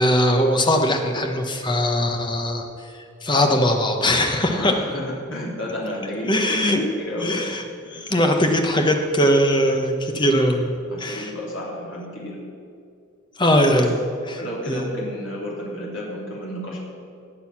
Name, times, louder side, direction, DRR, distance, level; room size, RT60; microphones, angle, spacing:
voice 1, 0.0-2.7 3.2-4.7 6.3-6.8 7.2-7.6 7.9-10.7 11.0-11.3 13.4-13.9 14.3-14.4 14.7-14.8, equal, 20° left, 4 dB, 1.1 m, -20 dB
voice 2, 4.5-7.4 7.8-8.0 10.9-12.4 13.6-13.9 14.4-16.8, left 1 dB, 65° left, -4 dB, 3.4 m, -31 dB
19.5 x 6.8 x 6.0 m, 2.4 s
head